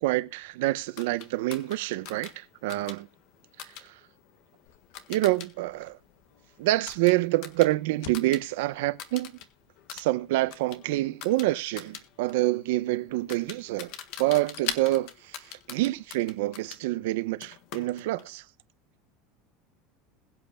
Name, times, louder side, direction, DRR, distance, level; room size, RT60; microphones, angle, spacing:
voice 1, 0.0-3.1 3.6-4.0 5.1-6.0 6.6-9.3 9.9-13.9 14.2-18.4, right 17 dB, 80° right, 0.9 m, -27 dB
sound 1, 1.0-5.5 5.8-8.4 8.7-9.5 9.8-16.8 17.4-18.3, left 10 dB, 55° left, 1.6 m, -45 dB
Fire, 4.7-16.2, left 11 dB, 70° left, 1.4 m, -45 dB
21.5 x 8.0 x 2.3 m
cardioid pair, 160°, 0 cm